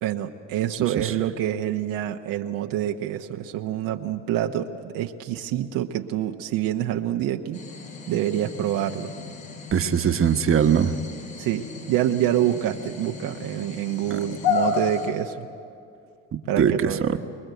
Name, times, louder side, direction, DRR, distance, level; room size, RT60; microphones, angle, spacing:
voice 1, 0.0-7.6 8.1-9.1 11.4-15.5 16.5-17.0, right 11 dB, 75° right, 4 dB, 1.1 m, -26 dB
sound 1, 7.5-15.1, left 5 dB, 75° left, 6.0 m, -32 dB
voice 2, 9.7-10.9 14.1-14.2 16.6-17.2, right 8 dB, 40° right, 8 dB, 1.3 m, -21 dB
25.0 x 21.0 x 8.1 m, 2.5 s
supercardioid pair, 80°, 34 cm